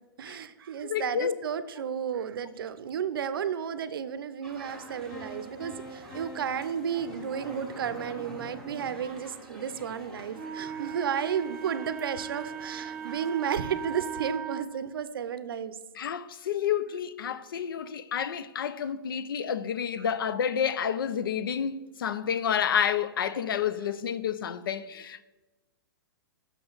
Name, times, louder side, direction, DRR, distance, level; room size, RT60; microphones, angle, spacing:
voice 1, 0.2-15.8 20.0-20.1, right 8 dB, 75° right, 0.5 m, -33 dB
voice 2, 0.8-1.4 16.0-25.2, left 8 dB, 70° left, 0.5 m, -29 dB
sound 1, 4.4-14.3, right 1 dB, 5° left, 0.6 m, -47 dB
sound 2, 5.1-8.0, right 1 dB, 45° left, 2.1 m, -46 dB
Wind instrument woodwind instrument, 10.3-14.7, right 7 dB, 25° right, 1.3 m, -38 dB
6.9 x 6.0 x 3.9 m
hypercardioid pair, 180°, 12 cm